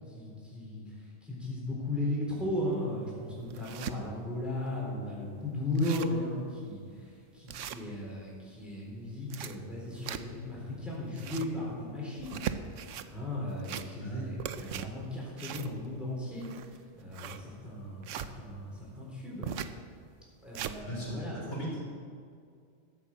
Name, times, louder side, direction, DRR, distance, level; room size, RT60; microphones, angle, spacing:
voice 1, 0.1-0.8 1.2-12.5 12.8-16.5 16.9-19.5 20.4-21.4, left 1 dB, ahead, -5 dB, 3.8 m, -36 dB
sound 1, 2.6-2.7 3.2-4.0 4.5-4.6 4.9-5.0 5.4-5.5 5.7-6.2 6.7-6.8 7.5-8.3 9.0-10.5 11.0-11.6 12.1-13.1 13.5-14.1 14.4-18.3 19.4-19.8 20.2-20.8, right 9 dB, 75° right, 1.0 m, -39 dB
voice 2, 14.0-14.3 20.8-21.8, equal, 60° left, -4 dB, 3.9 m, -37 dB
13.5 x 8.5 x 7.4 m, 2.2 s
omnidirectional pair, 1.4 m